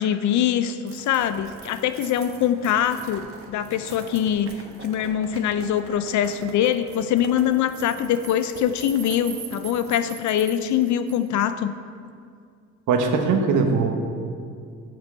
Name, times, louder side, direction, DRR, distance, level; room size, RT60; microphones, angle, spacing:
voice 1, 0.0-11.7, left 9 dB, 70° left, 11 dB, 0.5 m, -23 dB
sound 1, 0.9-11.4, right 5 dB, 45° right, 1.3 m, -42 dB
voice 2, 12.9-13.9, right 4 dB, 80° right, 4 dB, 1.1 m, -20 dB
6.9 x 6.2 x 7.2 m, 2.3 s
cardioid pair, 90°, 30 cm